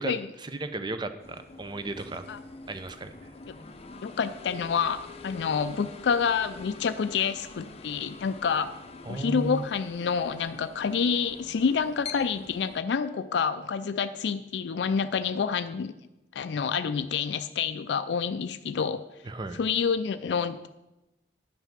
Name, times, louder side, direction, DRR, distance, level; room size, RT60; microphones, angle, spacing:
voice 1, 0.0-2.2 2.7-3.3 9.1-9.6 19.2-19.6, right 2 dB, 25° right, 10 dB, 0.6 m, -35 dB
sound 1, 1.2-12.8, left 4 dB, 35° left, 0.7 m, -45 dB
voice 2, 4.0-8.8 9.1-15.9 16.3-19.0 19.6-20.7, left 6 dB, 70° left, 11 dB, 0.4 m, -28 dB
10.5 x 5.7 x 6.0 m, 0.97 s
head